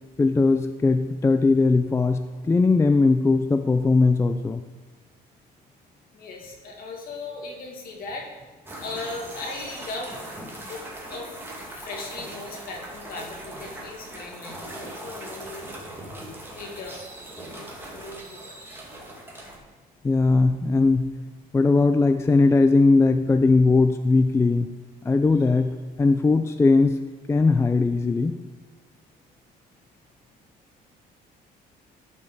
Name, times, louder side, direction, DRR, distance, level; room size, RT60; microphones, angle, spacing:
voice 1, 0.2-4.6 20.0-21.1 21.5-24.7 25.0-27.0 27.3-28.3, left 3 dB, 15° left, 8 dB, 0.4 m, -19 dB
voice 2, 6.1-8.3 8.8-10.1 10.6-15.7 16.5-17.0 17.3-18.6 26.3-26.4, left 3 dB, 60° left, 1 dB, 2.2 m, -38 dB
sound 1, 8.7-19.6, right 1 dB, 15° right, 2.3 m, -40 dB
11.5 x 5.5 x 4.8 m, 1.4 s
cardioid pair, 110°, 17 cm